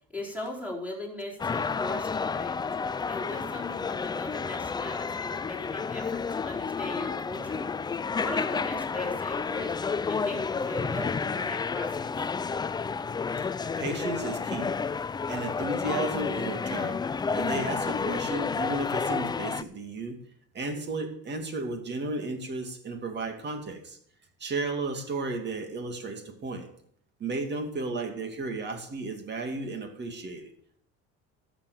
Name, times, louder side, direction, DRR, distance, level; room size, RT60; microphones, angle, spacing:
voice 1, 0.1-2.5 3.0-7.6 8.1-12.1, left 1 dB, 5° right, -3 dB, 4.4 m, -39 dB
sound 1, 1.4-19.6, left 5 dB, 15° left, 0.4 m, -31 dB
voice 2, 13.4-14.8 15.3-17.0 17.3-20.2 20.5-24.0 24.4-26.7 27.2-30.5, right 2 dB, 35° right, 5 dB, 2.6 m, -34 dB
13.0 x 7.3 x 7.1 m, 0.65 s
cardioid pair, 115°, 29 cm